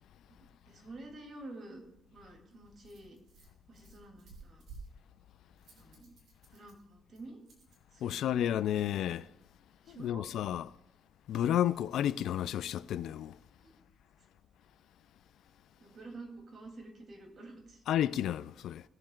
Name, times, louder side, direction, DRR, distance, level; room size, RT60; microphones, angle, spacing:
voice 1, 0.3-1.8 2.1-3.2 3.7-4.6 5.7-6.1 6.5-7.4 7.9-8.4 9.8-10.3 13.6-13.8 15.8-17.8, right 2 dB, 50° right, 3.0 m, -49 dB
Rattle, 1.8-7.8, right 4 dB, 70° right, 3.7 m, -56 dB
voice 2, 8.0-9.3 9.9-10.7 11.3-13.4 17.9-18.8, left 11 dB, 80° left, 0.4 m, -31 dB
19.0 x 7.4 x 2.5 m
cardioid pair, 90°, 0 cm